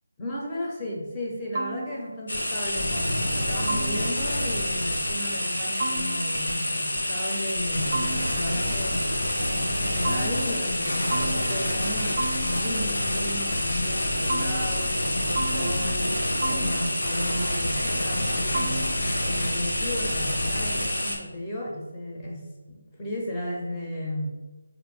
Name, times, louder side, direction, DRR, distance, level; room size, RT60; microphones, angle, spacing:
voice 1, 0.2-24.3, equal, 15° left, -3 dB, 0.6 m, -34 dB
sound 1, 1.5-2.3 3.7-4.4 5.8-6.6 7.9-8.7 10.0-10.8 11.1-11.9 12.2-13.0 14.3-15.1 15.4-16.1 16.4-17.2 18.5-19.2, right 2 dB, 50° right, 0.5 m, -34 dB
sound 2, 2.3-21.2, left 1 dB, 65° left, 0.9 m, -27 dB
4.3 x 2.5 x 3.3 m, 1.1 s
figure-of-eight pair, 165°, 0 cm